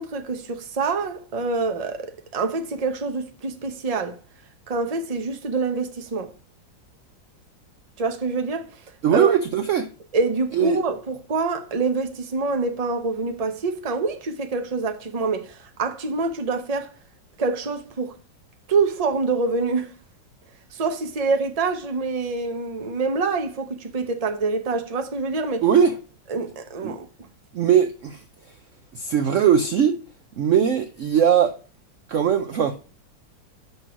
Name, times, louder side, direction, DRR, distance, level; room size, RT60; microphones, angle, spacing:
voice 1, 0.0-4.2 4.7-6.3 8.0-8.7 9.1-9.3 10.1-16.9 17.4-18.1 18.7-19.9 20.7-25.7 26.3-27.1, right 4 dB, 35° right, 0.6 m, -26 dB
voice 2, 9.0-9.9 10.5-10.8 25.6-25.9 26.8-26.9 27.5-28.2 28.9-30.0 30.4-31.5 32.1-32.8, right 8 dB, 75° right, 0.7 m, -19 dB
6.1 x 5.4 x 6.1 m
omnidirectional pair, 2.0 m